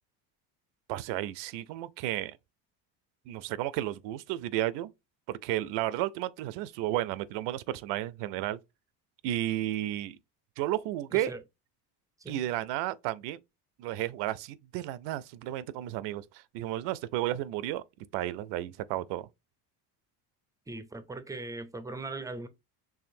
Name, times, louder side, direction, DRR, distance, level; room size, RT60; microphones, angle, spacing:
voice 1, 0.9-2.4 3.3-4.9 5.3-8.6 9.2-10.2 10.6-11.3 12.3-13.4 13.8-17.8 18.1-19.3, right 14 dB, 80° right, 0.5 m, -32 dB
voice 2, 20.7-22.5, right 2 dB, 10° right, 0.3 m, -39 dB
4.8 x 3.1 x 2.6 m
cardioid pair, 120°, 42 cm